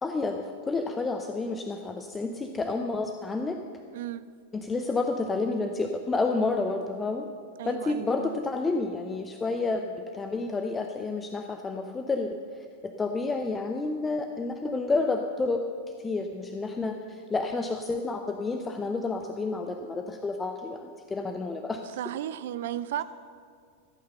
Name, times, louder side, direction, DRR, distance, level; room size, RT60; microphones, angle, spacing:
voice 1, 0.0-3.6 4.5-7.3 7.7-15.6 16.0-21.8, left 3 dB, 15° left, 5 dB, 0.6 m, -30 dB
voice 2, 7.6-8.4 22.0-23.0, right 12 dB, 55° right, 14 dB, 0.5 m, -34 dB
14.5 x 8.7 x 6.7 m, 2.2 s
figure-of-eight pair, 90°, 0 cm